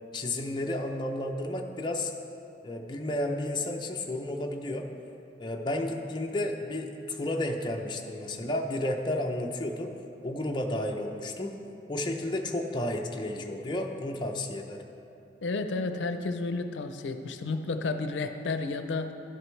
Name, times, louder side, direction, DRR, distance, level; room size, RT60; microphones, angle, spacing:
voice 1, 0.1-2.1 2.6-4.9 5.4-9.9 10.2-11.6 11.9-14.8, left 1 dB, 25° left, 2 dB, 0.5 m, -32 dB
voice 2, 15.4-19.1, left 3 dB, 85° left, 8 dB, 0.5 m, -31 dB
12.0 x 7.7 x 3.2 m, 2.7 s
head